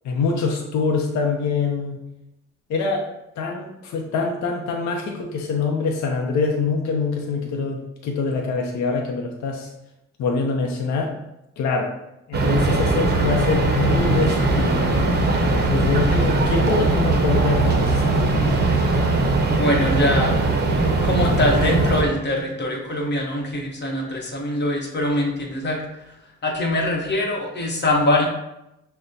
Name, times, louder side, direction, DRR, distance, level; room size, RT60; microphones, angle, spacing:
voice 1, 0.0-2.0 2.7-3.1 3.4-9.7 10.2-11.2 11.6-11.9 12.3-14.8 15.7-18.2, left 4 dB, 65° left, 1 dB, 0.6 m, -24 dB
sound 1, 12.3-22.0, right 2 dB, 35° right, 0.7 m, -20 dB
voice 2, 19.6-20.4 21.0-26.2 26.4-28.3, left 1 dB, 35° left, 0 dB, 1.0 m, -23 dB
5.8 x 2.1 x 2.7 m, 0.87 s
cardioid pair, 90°, 30 cm